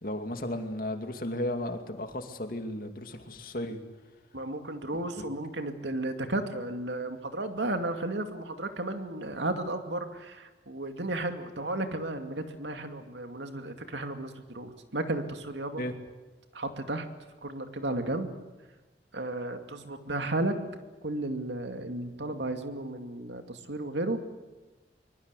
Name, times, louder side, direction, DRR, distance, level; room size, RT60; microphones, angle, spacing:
voice 1, 0.0-3.8 5.2-5.3 15.8-15.9, left 1 dB, 50° left, 5 dB, 2.4 m, -34 dB
voice 2, 4.3-15.8 16.5-17.1 17.4-18.3 19.1-20.5 21.0-24.2, right 2 dB, 80° right, 6 dB, 2.4 m, -33 dB
24.0 x 23.0 x 8.3 m, 1.2 s
head